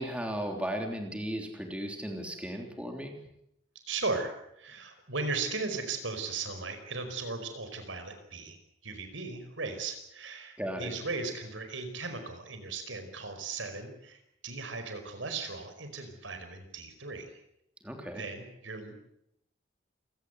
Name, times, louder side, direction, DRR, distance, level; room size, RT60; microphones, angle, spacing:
voice 1, 0.0-3.1 10.6-10.9 17.8-18.2, equal, 5° right, 3 dB, 3.3 m, -35 dB
voice 2, 3.9-8.6 8.8-17.4 18.2-18.9, right 3 dB, 85° right, 7 dB, 5.0 m, -37 dB
28.5 x 18.0 x 8.2 m, 0.79 s
head